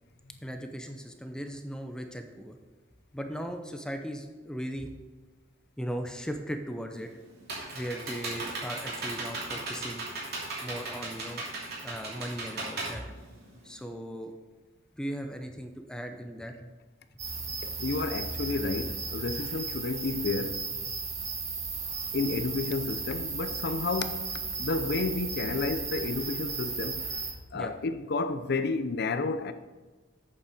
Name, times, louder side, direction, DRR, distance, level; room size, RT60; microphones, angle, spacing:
voice 1, 0.4-2.6 3.1-4.9 5.8-7.1 7.7-10.0 10.6-11.4 11.8-13.1 13.6-14.3 15.0-16.7 27.5-27.7, equal, 5° left, 0.6 m, -37 dB
Computer keyboard, 6.9-13.8, right 2 dB, 55° right, 2.8 m, -37 dB
sound 1, 17.2-27.3, right 4 dB, 35° right, 1.7 m, -35 dB
voice 2, 17.6-20.6 22.1-24.3 24.6-27.0 27.5-29.5, left 3 dB, 55° left, 0.7 m, -31 dB
8.4 x 7.3 x 5.0 m
head